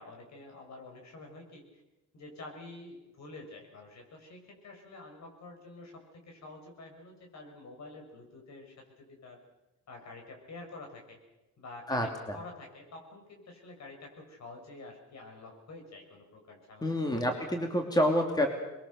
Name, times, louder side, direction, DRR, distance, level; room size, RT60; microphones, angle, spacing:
voice 1, 0.0-1.6 2.1-9.4 9.9-11.2 11.6-17.2, left 2 dB, 60° left, 2 dB, 6.7 m, -48 dB
voice 2, 11.9-12.4 16.8-18.5, equal, 15° left, 3 dB, 2.9 m, -28 dB
22.5 x 22.0 x 6.6 m, 1.0 s
cardioid pair, 90°, 30 cm